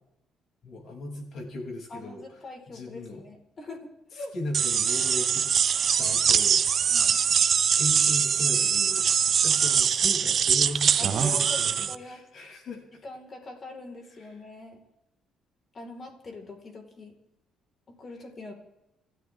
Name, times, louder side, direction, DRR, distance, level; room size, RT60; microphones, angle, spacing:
voice 1, 0.6-2.4 2.7-3.3 4.1-5.5 6.0-6.6 7.7-12.9, left 1 dB, 55° left, 0 dB, 7.2 m, -37 dB
voice 2, 1.9-4.3 6.9-7.2 11.0-11.6 11.9-12.2 13.0-14.8 15.7-17.1 17.9-18.5, left 2 dB, 35° left, 2 dB, 4.7 m, -42 dB
sound 1, 4.5-12.0, right 7 dB, 50° right, 0.9 m, -23 dB
29.5 x 13.0 x 3.7 m, 0.89 s
cardioid pair, 110°, 0 cm